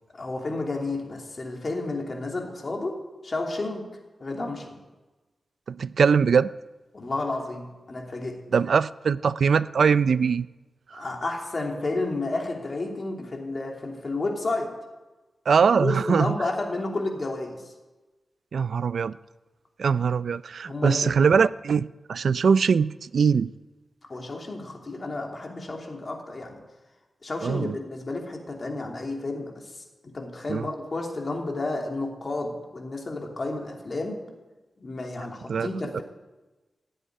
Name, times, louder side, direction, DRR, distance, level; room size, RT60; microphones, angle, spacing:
voice 1, 0.1-3.0 3.2-3.9 4.2-4.8 6.9-8.4 10.9-14.7 15.8-17.7 20.7-21.1 24.1-26.6 27.2-29.8 30.1-34.2 34.8-36.0, left 2 dB, 40° left, 1 dB, 2.9 m, -31 dB
voice 2, 5.7-6.5 8.5-10.5 10.9-11.0 15.5-16.4 18.5-19.2 19.8-23.5 27.4-27.8 30.5-30.7 35.5-35.7, right 6 dB, 80° right, 17 dB, 0.4 m, -22 dB
16.0 x 7.9 x 9.9 m, 1.2 s
wide cardioid pair, 105°, 0 cm